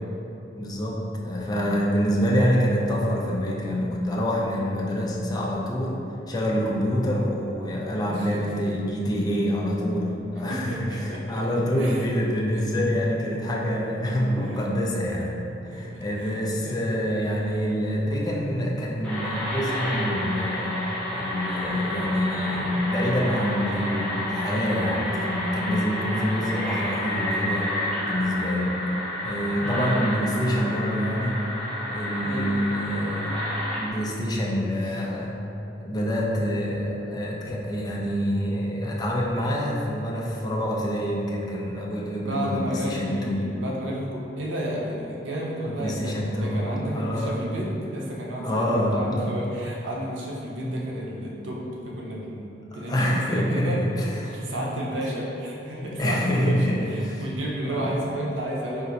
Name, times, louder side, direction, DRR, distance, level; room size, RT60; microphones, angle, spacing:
voice 1, 0.6-15.4 15.6-20.8 21.1-27.7 28.1-28.7 29.2-31.4 31.9-33.4 33.8-35.4 35.8-43.5 45.7-47.4 48.4-49.0 50.6-50.8 52.7-54.8 55.7-57.2 57.6-58.0, equal, 20° left, -3 dB, 0.4 m, -26 dB
voice 2, 8.1-8.4 10.5-11.2 11.8-12.1 12.5-12.8 14.4-14.6 15.7-16.9 29.6-29.8 32.2-32.7 34.9-35.0 42.2-53.8 54.2-56.6 56.9-58.9, right 1 dB, 90° right, -3 dB, 0.7 m, -32 dB
sound 1, 19.0-33.9, left 1 dB, 5° left, 0.8 m, -30 dB
4.2 x 2.5 x 3.9 m, 2.9 s
head